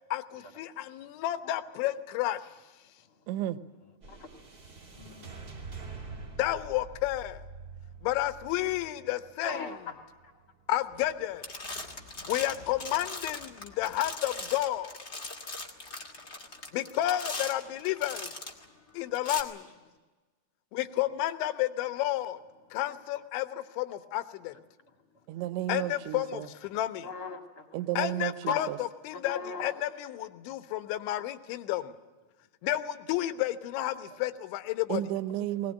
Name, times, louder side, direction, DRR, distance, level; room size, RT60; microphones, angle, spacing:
voice 1, 0.1-2.5 6.4-7.4 8.0-9.7 10.7-11.4 12.3-15.0 16.7-18.3 19.0-19.7 20.7-22.4 22.7-24.6 25.7-27.1 28.0-32.0 32.6-35.0, left 14 dB, 80° left, 11 dB, 3.3 m, -31 dB
voice 2, 3.3-3.6 25.3-26.5 27.7-28.8 34.9-35.7, right 13 dB, 85° right, 13 dB, 3.2 m, -32 dB
sound 1, 4.0-12.4, right 3 dB, 30° right, 1.9 m, -47 dB
voice 3, 5.0-5.7 9.4-9.9 27.0-27.7 28.5-28.6 29.1-29.7, left 4 dB, 40° left, 4 dB, 2.3 m, -38 dB
sound 2, 10.9-11.2 11.4-18.6 19.1-19.4, left 3 dB, 55° left, 0.7 m, -40 dB
20.5 x 20.0 x 9.8 m, 1.3 s
omnidirectional pair, 5.3 m